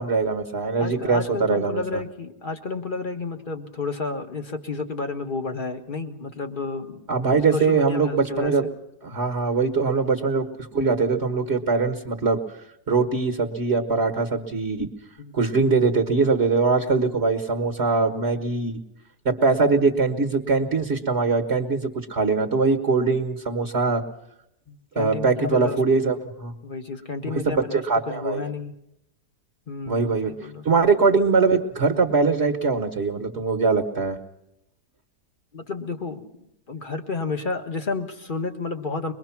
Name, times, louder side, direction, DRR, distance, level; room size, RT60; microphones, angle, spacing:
voice 1, 0.0-2.0 7.1-8.7 9.0-12.4 12.9-14.9 15.3-18.8 19.2-24.0 24.9-26.5 27.2-28.4 29.9-30.3 30.6-34.2, right 4 dB, 40° right, 5 dB, 1.6 m, -22 dB
voice 2, 0.8-7.0 7.5-8.5 15.2-15.3 19.7-19.8 24.7-25.8 26.6-28.7 29.7-30.6 35.5-36.2 36.7-39.1, left 3 dB, 30° left, 6 dB, 1.5 m, -31 dB
23.5 x 22.0 x 5.9 m, 0.80 s
omnidirectional pair, 1.8 m